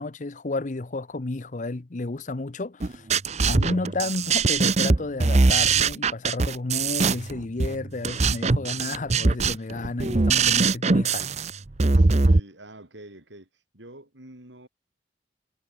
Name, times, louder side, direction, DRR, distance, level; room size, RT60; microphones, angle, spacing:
voice 1, 0.0-3.1 3.5-11.3, left 2 dB, 45° left, 0.7 m, -32 dB
sound 1, 2.8-12.4, right 4 dB, 40° right, 0.7 m, -22 dB
voice 2, 11.9-13.5 13.7-14.7, right 1 dB, 80° right, 6.0 m, -46 dB
head